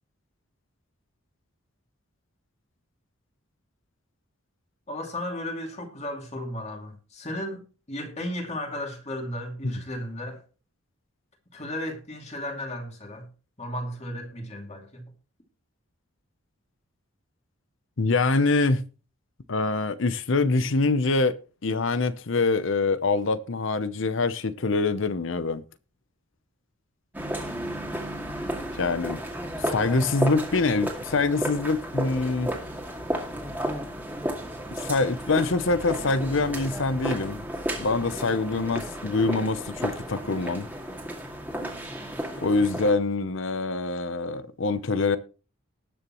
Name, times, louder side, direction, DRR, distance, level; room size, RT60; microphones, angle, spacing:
voice 1, 4.9-7.6 7.9-10.4 11.5-13.3 13.6-15.0, left 1 dB, 30° left, 2.6 m, -34 dB
voice 2, 18.0-18.8 19.5-25.6 28.8-29.2 29.7-32.5 34.8-37.4 37.8-40.7 42.4-45.2, left 3 dB, 60° left, 0.7 m, -25 dB
sound 1, 27.1-42.9, equal, 10° right, 2.1 m, -33 dB
19.0 x 6.9 x 3.1 m
head